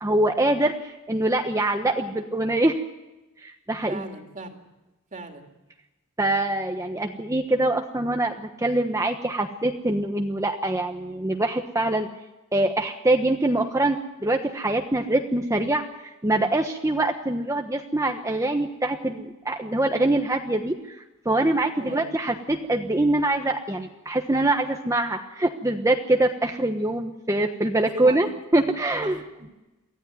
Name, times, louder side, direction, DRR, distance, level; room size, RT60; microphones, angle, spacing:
voice 1, 0.0-2.8 3.4-4.0 6.2-12.1 12.5-15.8 16.2-21.0 21.2-28.3 28.5-29.2, right 2 dB, 15° right, 4 dB, 1.2 m, -24 dB
voice 2, 3.9-4.6 5.1-5.5 21.8-22.1 27.9-28.7 29.0-29.5, right 2 dB, 35° right, 3 dB, 2.8 m, -39 dB
24.0 x 15.5 x 9.3 m, 1.0 s
head